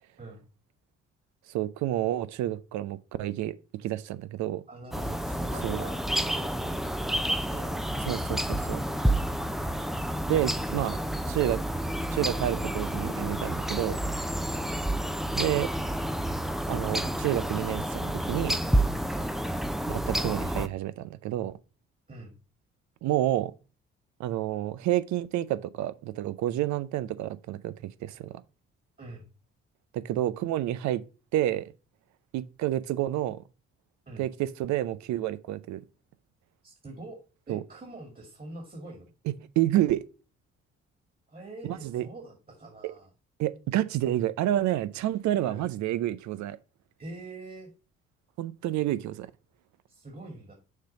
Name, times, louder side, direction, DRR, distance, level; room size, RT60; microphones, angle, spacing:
voice 1, 1.5-3.5 3.8-4.6 5.6-5.8 8.1-8.8 10.3-11.0 11.2-11.6 12.1-14.0 15.4-15.7 16.7-18.6 19.9-21.5 23.0-23.5 24.2-27.7 28.0-28.4 29.9-31.0 31.3-31.7 32.3-33.4 34.2-35.8 37.5-37.6 39.6-40.0 41.6-42.1 42.8-42.9 43.4-46.6 48.4-49.3, right 13 dB, 65° right, 0.6 m, -29 dB
voice 2, 4.7-7.7 9.0-9.7 14.5-14.8 19.1-19.3 22.1-22.4 29.0-29.3 34.1-34.3 36.6-37.2 37.5-39.1 41.3-43.1 45.4-45.7 47.0-47.7 49.9-50.5, right 2 dB, 30° right, 2.1 m, -45 dB
sound 1, 4.9-20.7, right 1 dB, ahead, 0.6 m, -29 dB
6.6 x 3.4 x 5.4 m
hypercardioid pair, 50°, 31 cm